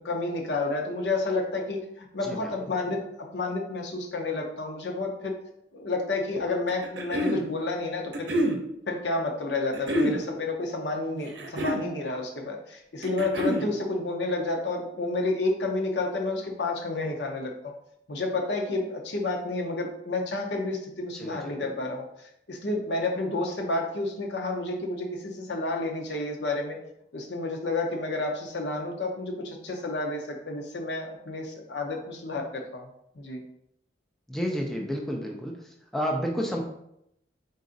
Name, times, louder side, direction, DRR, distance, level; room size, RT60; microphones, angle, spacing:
voice 1, 0.0-5.3 5.7-8.3 8.9-17.7 18.1-22.1 22.5-26.8 27.1-32.9 33.2-33.4, left 2 dB, 80° left, 2 dB, 0.7 m, -30 dB
sound 1, 6.7-7.4 8.1-8.6 9.7-10.2 11.2-11.9 13.0-13.7, equal, 75° right, 0.6 m, -26 dB
voice 2, 21.2-21.5 34.3-35.5 35.9-36.6, equal, ahead, -1 dB, 0.5 m, -30 dB
4.0 x 2.5 x 3.8 m, 0.78 s
head